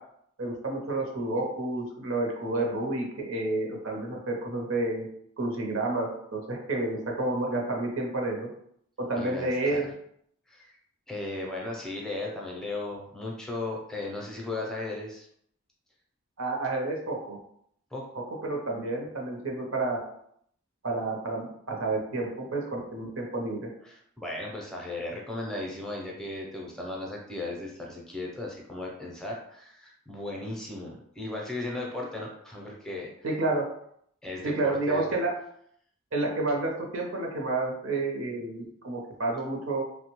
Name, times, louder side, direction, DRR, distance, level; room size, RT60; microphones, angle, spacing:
voice 1, 0.4-5.1 5.4-8.5 9.0-9.9 16.4-17.4 18.1-20.0 20.8-23.7 33.2-33.7 34.4-35.3 36.1-39.8, right 2 dB, 75° right, 0 dB, 0.7 m, -30 dB
voice 2, 9.1-9.8 10.5-10.7 11.1-15.3 17.9-18.0 23.9-33.1 34.2-35.0, left 2 dB, 5° left, -2 dB, 0.5 m, -36 dB
3.1 x 2.1 x 3.0 m, 0.69 s
head